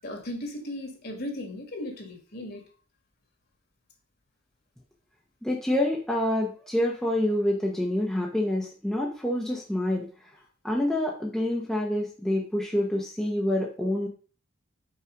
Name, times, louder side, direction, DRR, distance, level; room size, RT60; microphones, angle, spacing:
voice 1, 0.0-2.7, left 1 dB, 45° left, 3 dB, 1.9 m, -36 dB
voice 2, 5.4-10.1 10.6-14.1, left 1 dB, 5° left, -2 dB, 0.9 m, -27 dB
5.6 x 4.8 x 5.1 m, 0.39 s
head